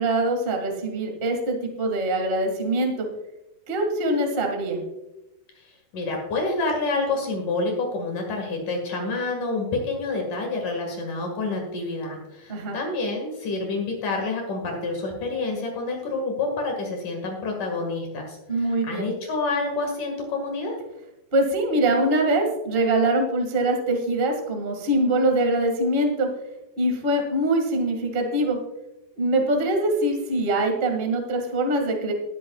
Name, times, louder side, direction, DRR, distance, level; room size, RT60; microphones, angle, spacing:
voice 1, 0.0-3.1 3.7-4.8 12.5-12.8 18.5-19.1 21.3-26.3 26.8-28.6 29.1-32.1, right 1 dB, 25° right, 2 dB, 1.3 m, -23 dB
voice 2, 5.6-20.8, left 3 dB, 65° left, 2 dB, 3.3 m, -28 dB
20.0 x 9.3 x 2.4 m, 0.94 s
omnidirectional pair, 4.0 m